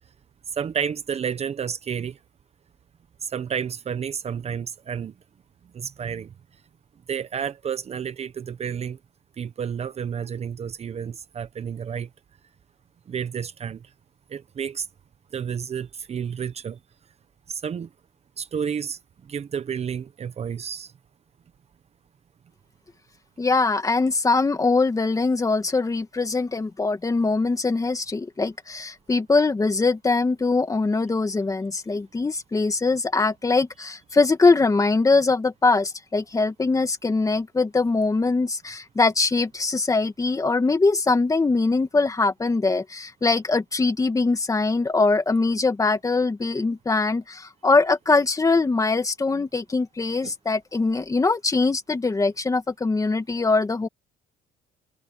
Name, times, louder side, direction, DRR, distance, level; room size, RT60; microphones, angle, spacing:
voice 1, 0.5-2.2 3.2-5.1 5.7-6.3 7.1-9.0 9.4-12.1 13.1-13.8 14.3-14.9 15.3-16.8 17.5-17.9 18.4-20.9 50.2-50.3, right 7 dB, 40° right, 1.0 m, -30 dB
voice 2, 23.4-53.9, left 3 dB, 20° left, 2.2 m, -22 dB
cardioid pair, 110°, 17 cm